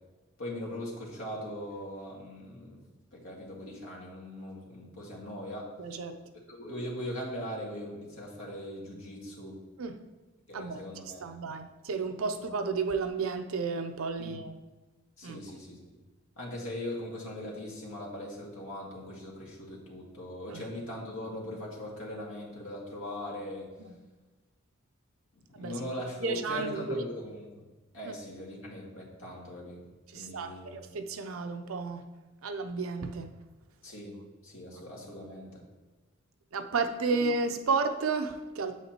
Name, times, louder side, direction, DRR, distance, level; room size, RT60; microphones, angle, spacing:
voice 1, 0.4-2.8 3.1-5.7 6.5-9.6 10.5-11.4 14.2-14.4 15.2-16.0 16.4-23.7 25.5-27.5 27.9-29.9 30.1-30.8 33.8-35.6 37.1-37.2, left 1 dB, 80° left, 2.0 m, -40 dB
voice 2, 5.8-6.2 9.8-10.0 10.5-14.6 15.2-15.4 20.5-20.7 23.8-23.9 25.5-25.9 26.2-27.0 28.0-28.1 30.1-32.1 32.4-33.4 36.5-38.8, right 4 dB, 85° right, 0.6 m, -32 dB
8.3 x 7.3 x 2.9 m
head